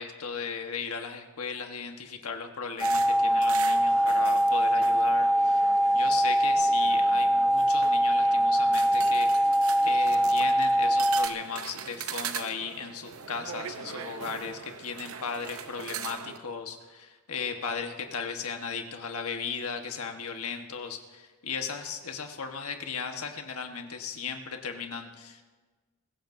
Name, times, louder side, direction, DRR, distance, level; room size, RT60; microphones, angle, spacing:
voice 1, 0.0-5.6 5.9-9.3 9.8-25.4, left 5 dB, 85° left, 5 dB, 1.3 m, -36 dB
sound 1, 2.8-11.3, right 1 dB, ahead, 0.4 m, -23 dB
sound 2, 2.8-16.4, right 7 dB, 75° right, 0.7 m, -40 dB
24.0 x 15.0 x 2.7 m, 1.3 s
head